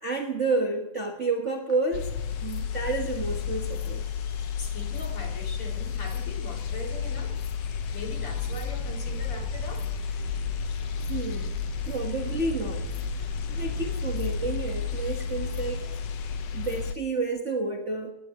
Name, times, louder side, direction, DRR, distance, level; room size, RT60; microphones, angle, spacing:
voice 1, 0.0-2.1 2.4-4.0 11.1-11.5 11.8-12.9 13.5-15.8 16.5-18.1, right 3 dB, 80° right, 1 dB, 0.6 m, -30 dB
Engine / Domestic sounds home sounds, 1.7-1.8 2.1-16.8, left 7 dB, 85° left, 3.7 m, -52 dB
sound 1, 1.9-16.9, left 7 dB, 65° left, 1.6 m, -32 dB
voice 2, 4.1-7.4 7.8-10.2 13.3-13.8, left 1 dB, 45° left, 1 dB, 3.5 m, -42 dB
sound 2, 8.3-16.0, right 1 dB, 20° right, 1.0 m, -40 dB
20.0 x 18.5 x 3.0 m, 0.99 s
omnidirectional pair, 3.8 m